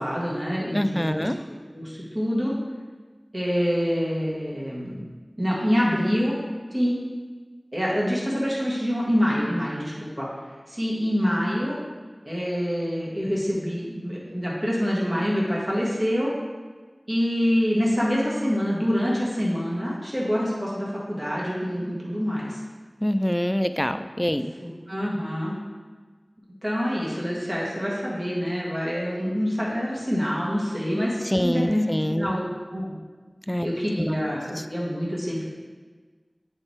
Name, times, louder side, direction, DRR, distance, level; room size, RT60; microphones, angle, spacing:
voice 1, 0.0-2.5 3.3-5.1 5.4-6.3 6.7-7.0 7.7-10.3 10.7-11.8 12.2-16.3 17.1-22.6 24.6-25.6 26.6-32.4 32.7-32.9 33.6-35.4, equal, 35° right, -6 dB, 1.7 m, -26 dB
voice 2, 0.7-1.4 23.0-24.5 31.3-32.3 33.5-33.7 34.0-34.2, equal, 15° left, 10 dB, 0.3 m, -25 dB
8.0 x 3.4 x 4.2 m, 1.4 s
wide cardioid pair, 45°, 0 cm